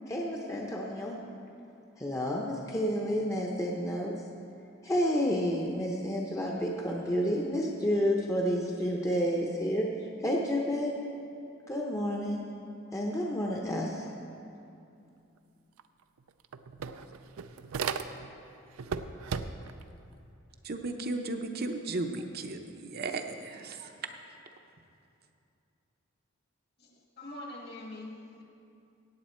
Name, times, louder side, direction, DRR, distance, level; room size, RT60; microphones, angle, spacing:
voice 1, 0.1-1.2 2.0-4.2 4.8-9.9 10.2-10.9 11.7-12.4 12.9-14.1, equal, 15° left, -2 dB, 0.8 m, -30 dB
sound 1, 15.8-15.9 16.2-18.4 18.8-19.8, right 6 dB, 85° right, 0.5 m, -36 dB
voice 2, 20.6-23.9, right 2 dB, 45° right, 5 dB, 0.7 m, -35 dB
voice 3, 26.8-28.1, left 1 dB, 50° left, 0 dB, 1.7 m, -43 dB
16.5 x 8.6 x 4.4 m, 2.6 s
head